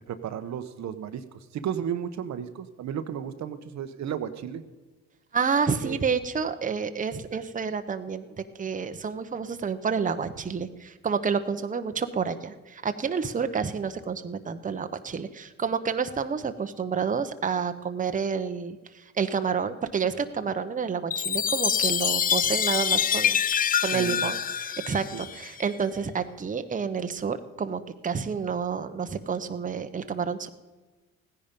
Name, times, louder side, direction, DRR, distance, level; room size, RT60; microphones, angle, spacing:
voice 1, 0.1-4.6 5.8-6.1 23.9-24.3 25.1-25.2, right 8 dB, 65° right, 10 dB, 0.9 m, -34 dB
voice 2, 5.3-23.5 23.8-30.5, right 6 dB, 25° right, 9 dB, 0.9 m, -29 dB
Chime, 21.1-25.6, left 8 dB, 30° left, 0.3 m, -26 dB
15.5 x 10.0 x 5.3 m, 1.3 s
cardioid pair, 90°, 30 cm